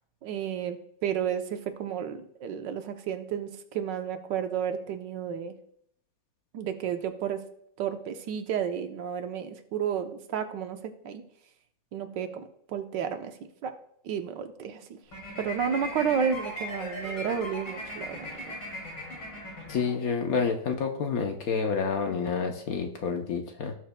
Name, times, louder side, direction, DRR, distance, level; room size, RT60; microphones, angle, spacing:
voice 1, 0.2-0.8 1.0-5.5 6.5-7.4 7.8-11.2 11.9-12.3 12.7-13.3 13.6-13.7 14.0-15.0 15.4-18.6, right 8 dB, 75° right, 7 dB, 1.4 m, -31 dB
sound 1, 15.1-20.3, left 1 dB, 75° left, 3.4 m, -39 dB
voice 2, 19.7-23.7, left 5 dB, 60° left, 4 dB, 1.1 m, -29 dB
17.0 x 6.6 x 2.2 m, 0.68 s
omnidirectional pair, 1.9 m